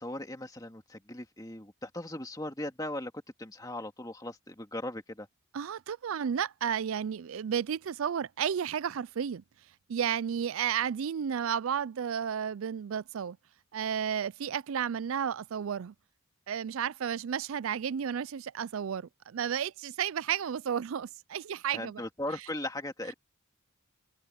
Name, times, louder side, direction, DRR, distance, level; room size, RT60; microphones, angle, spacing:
voice 1, 0.0-3.1 3.4-5.3 21.7-23.1, left 1 dB, 15° left, 2.4 m, -38 dB
voice 2, 5.5-9.4 9.9-13.4 13.7-15.9 16.5-22.0, right 8 dB, 75° right, 0.4 m, -32 dB
head